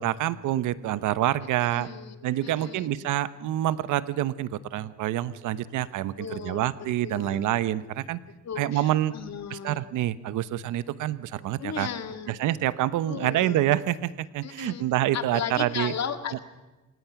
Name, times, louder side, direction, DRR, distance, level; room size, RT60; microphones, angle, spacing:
voice 1, 0.0-1.9 2.2-8.2 8.6-9.1 9.5-11.9 12.3-15.9, right 13 dB, 85° right, 15 dB, 1.0 m, -27 dB
voice 2, 1.6-2.9 6.2-6.7 7.0-7.5 8.4-9.8 11.6-12.4 13.1-13.6 14.4-14.9 15.1-16.4, left 8 dB, 60° left, 8 dB, 2.1 m, -36 dB
29.0 x 17.5 x 6.0 m, 1.1 s
cardioid pair, 90°, 30 cm